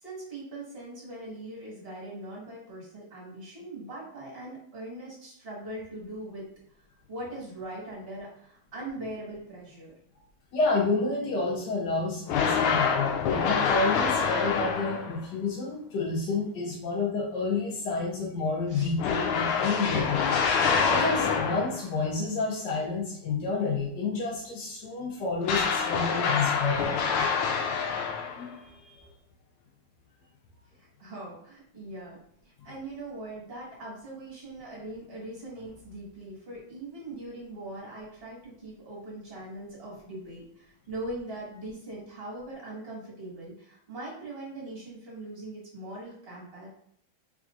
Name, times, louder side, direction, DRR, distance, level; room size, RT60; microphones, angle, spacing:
voice 1, 0.0-6.5 7.1-9.9 18.7-18.9 30.8-32.2 32.4-46.7, right 1 dB, 30° right, -4 dB, 1.6 m, -41 dB
voice 2, 10.5-20.3 20.9-27.2 28.3-29.1 32.6-32.7, left 3 dB, 65° left, -3 dB, 1.2 m, -30 dB
sound 1, 12.3-15.3 19.0-21.9 25.4-28.5, left 6 dB, 85° left, 1.5 m, -26 dB
4.8 x 3.6 x 2.5 m, 0.68 s
omnidirectional pair, 2.3 m